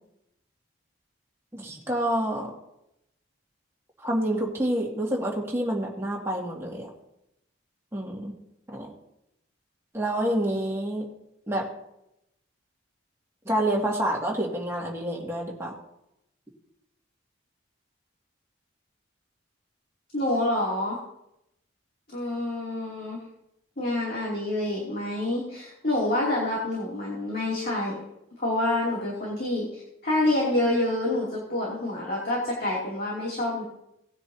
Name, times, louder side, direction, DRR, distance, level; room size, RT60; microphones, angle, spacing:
voice 1, 1.5-2.5 4.0-6.9 7.9-8.3 8.7-8.9 9.9-11.1 11.5-11.7 13.4-15.7, right 1 dB, 15° right, -3 dB, 2.2 m, -28 dB
voice 2, 20.1-21.0 22.1-23.2 23.8-27.9 28.4-29.7 30.0-33.6, left 1 dB, 45° left, -5 dB, 2.8 m, -27 dB
18.5 x 9.6 x 2.8 m, 0.83 s
head